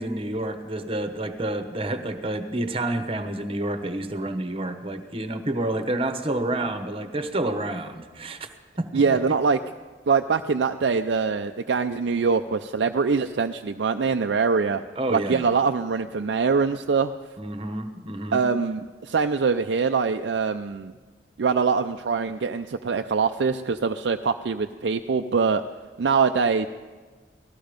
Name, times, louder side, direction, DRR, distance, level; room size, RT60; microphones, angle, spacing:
voice 1, 0.0-8.5 8.8-9.0 15.0-15.5 17.4-18.4, right 1 dB, 30° right, 8 dB, 1.0 m, -29 dB
voice 2, 8.9-9.6 10.1-14.8 15.1-17.1 18.3-20.9 21.4-25.6 26.0-26.7, right 5 dB, 70° right, 7 dB, 0.5 m, -23 dB
18.5 x 14.0 x 5.1 m, 1.4 s
head